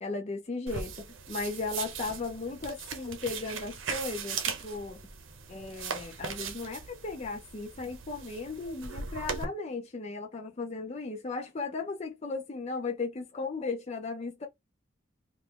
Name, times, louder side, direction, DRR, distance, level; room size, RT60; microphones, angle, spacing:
voice 1, 0.0-5.0 5.5-14.5, left 3 dB, 35° left, 0.5 m, -36 dB
sound 1, 0.7-9.4, right 6 dB, 75° right, 0.8 m, -39 dB
2.9 x 2.4 x 3.6 m
head